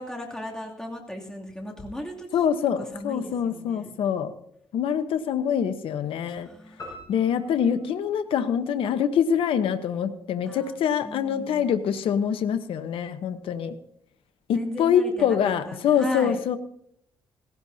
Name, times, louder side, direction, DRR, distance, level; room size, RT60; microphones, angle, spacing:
voice 1, 0.0-2.3 2.8-3.9 6.4-6.8 10.4-10.7 11.0-11.6 14.5-16.4, left 1 dB, 5° left, -1 dB, 2.7 m, -37 dB
voice 2, 2.3-4.3 4.7-6.5 7.1-13.7 14.5-16.6, left 8 dB, 80° left, 9 dB, 1.0 m, -25 dB
sound 1, 6.8-9.3, left 1 dB, 35° left, 6.8 m, -46 dB
18.0 x 16.5 x 2.8 m, 0.67 s
cardioid pair, 105°, 9 cm